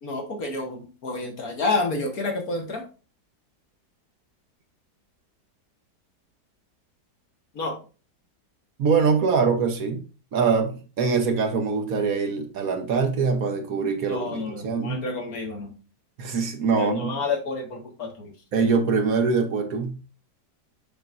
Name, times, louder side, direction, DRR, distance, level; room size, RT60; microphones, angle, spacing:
voice 1, 0.0-2.9 7.5-7.8 14.1-15.7 16.8-18.3, left 3 dB, 60° left, 1.8 m, -29 dB
voice 2, 8.8-10.0 10.3-15.0 16.2-17.2 18.5-20.0, right 5 dB, 60° right, 1.3 m, -23 dB
6.9 x 5.9 x 2.5 m
omnidirectional pair, 1.8 m